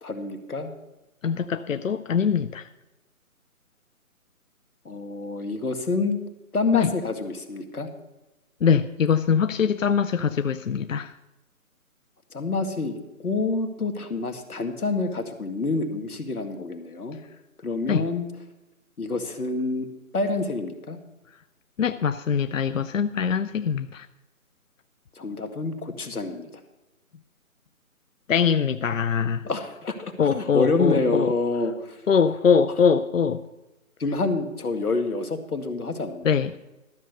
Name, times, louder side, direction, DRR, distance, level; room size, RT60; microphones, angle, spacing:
voice 1, 0.0-0.7 4.9-6.2 6.5-7.9 12.3-17.2 17.6-18.3 19.0-19.9 20.1-21.0 25.2-26.5 29.4-32.0 34.0-36.2, left 3 dB, 90° left, 6 dB, 2.0 m, -27 dB
voice 2, 1.2-2.7 6.7-6.9 8.6-11.1 17.9-18.0 21.8-24.1 28.3-29.5 30.2-31.3 32.1-33.4 36.2-36.6, left 6 dB, 65° left, 11 dB, 0.6 m, -23 dB
13.0 x 6.5 x 6.7 m, 1.0 s
hypercardioid pair, 170°, 43 cm